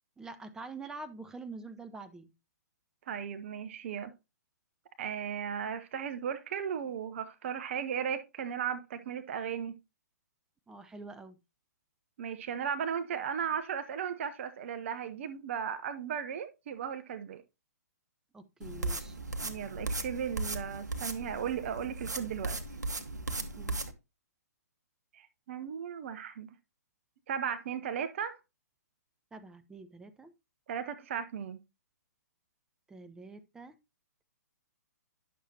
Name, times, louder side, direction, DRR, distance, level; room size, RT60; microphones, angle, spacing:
voice 1, 0.2-2.3 10.7-11.4 18.3-19.2 23.6-23.8 29.3-30.3 32.9-33.7, right 3 dB, 5° right, 0.5 m, -46 dB
voice 2, 3.1-4.1 5.0-9.7 12.2-17.4 19.4-22.6 25.1-26.5 27.3-28.4 30.7-31.6, right 8 dB, 45° right, 0.7 m, -36 dB
sound 1, 18.6-23.9, right 2 dB, 80° right, 1.0 m, -37 dB
10.0 x 6.4 x 2.8 m
figure-of-eight pair, 120°, 9 cm